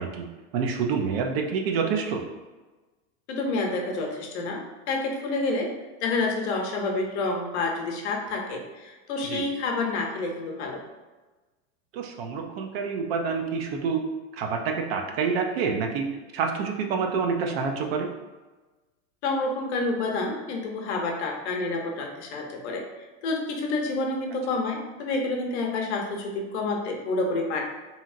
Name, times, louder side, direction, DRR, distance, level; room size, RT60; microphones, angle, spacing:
voice 1, 0.0-2.2 9.3-9.4 11.9-14.0 14.3-18.1, right 5 dB, 60° right, 4 dB, 0.5 m, -27 dB
voice 2, 3.3-5.7 6.0-10.8 19.2-22.8 23.2-27.6, left 3 dB, 70° left, 1 dB, 0.7 m, -28 dB
2.8 x 2.7 x 2.4 m, 1.2 s
supercardioid pair, 175°, 35 cm